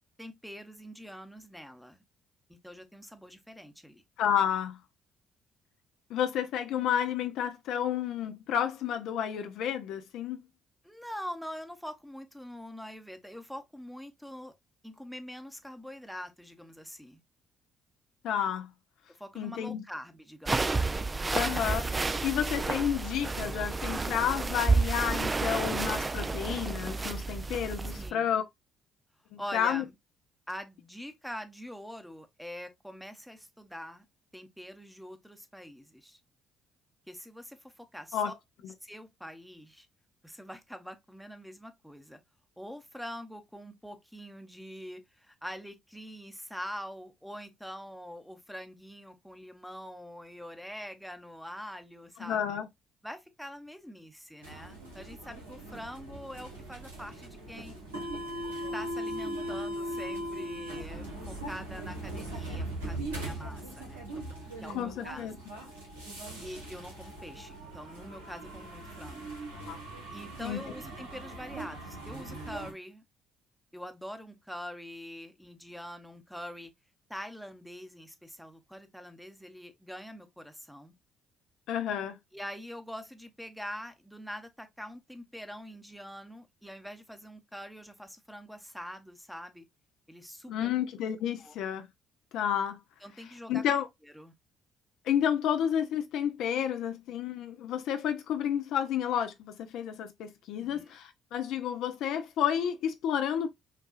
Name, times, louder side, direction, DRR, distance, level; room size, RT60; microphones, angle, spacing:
voice 1, 0.2-2.0 2.5-4.0 10.8-14.5 14.8-17.2 19.2-20.9 27.9-28.3 29.4-29.9 30.5-34.0 34.3-36.2 37.1-38.3 38.8-39.9 40.2-42.2 42.6-52.4 53.0-57.8 58.7-64.1 64.6-65.3 66.4-69.4 70.1-73.0 73.7-76.7 77.1-80.9 82.3-89.7 90.1-90.7 91.4-91.6 93.0-93.6 94.0-94.3 100.6-100.9, equal, ahead, 0.8 m, -44 dB
voice 2, 4.2-4.8 6.1-10.4 18.2-18.7 19.4-19.8 21.3-28.4 29.3-29.8 38.1-38.3 52.2-52.7 64.7-65.3 69.6-69.8 70.4-70.6 81.7-82.2 90.5-91.9 92.3-92.8 93.5-93.9 95.1-103.5, left 9 dB, 65° left, 0.4 m, -31 dB
sound 1, 20.5-28.1, right 3 dB, 25° right, 0.4 m, -30 dB
sound 2, 54.4-72.7, right 1 dB, 85° right, 1.0 m, -40 dB
5.6 x 2.3 x 2.3 m
figure-of-eight pair, 50°, 0 cm